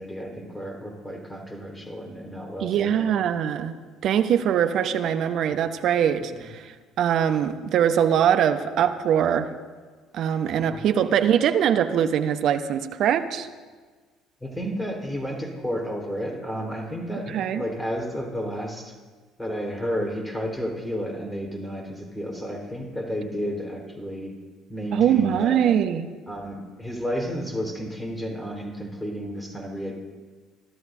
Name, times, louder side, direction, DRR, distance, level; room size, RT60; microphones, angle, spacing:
voice 1, 0.0-3.2 6.3-6.5 10.5-10.8 14.4-18.9 19.4-24.3 24.7-25.6 26.3-29.9, equal, 5° left, 1 dB, 4.2 m, -32 dB
voice 2, 2.6-3.7 4.0-9.5 10.1-13.5 17.3-17.6 24.9-26.1, right 9 dB, 55° right, 9 dB, 0.8 m, -22 dB
25.5 x 13.0 x 2.7 m, 1.4 s
hypercardioid pair, 55°, 0 cm